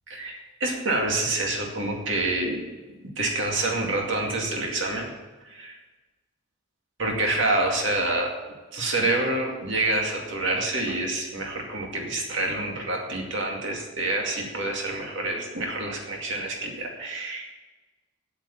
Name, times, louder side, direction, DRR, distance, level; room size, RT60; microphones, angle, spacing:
voice 1, 0.1-2.6 3.2-5.1 5.5-5.8 7.0-8.3 8.7-17.5, right 2 dB, 60° right, 0 dB, 2.3 m, -27 dB
8.5 x 8.2 x 8.4 m, 1.2 s
head